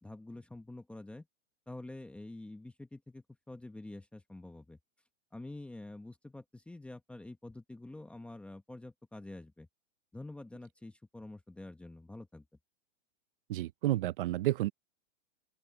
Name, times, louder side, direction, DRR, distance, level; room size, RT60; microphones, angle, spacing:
voice 1, 0.0-1.3 1.7-4.8 5.3-9.7 10.1-12.4, left 2 dB, 5° left, 1.1 m, -47 dB
voice 2, 13.5-14.7, right 15 dB, 45° right, 0.5 m, -30 dB
open air
hypercardioid pair, 155°, 39 cm